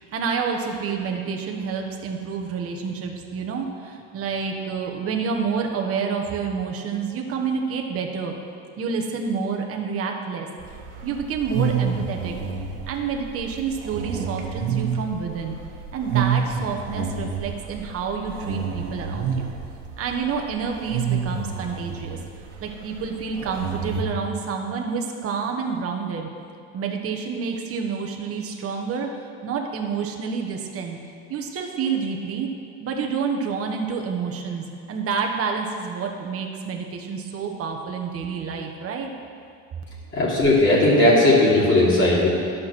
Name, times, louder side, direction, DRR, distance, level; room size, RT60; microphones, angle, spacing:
voice 1, 0.0-8.3 8.8-10.5 11.0-12.4 12.9-15.6 15.9-19.5 20.0-22.2 22.6-26.3 26.7-31.0 31.3-32.5 32.8-39.1, right 5 dB, 35° right, 2 dB, 1.3 m, -28 dB
sound 1, 10.6-24.0, right 6 dB, 75° right, 1.4 m, -29 dB
voice 2, 40.1-42.3, left 1 dB, 30° left, -7 dB, 3.0 m, -17 dB
11.0 x 6.3 x 6.2 m, 2.3 s
supercardioid pair, 105°, 38 cm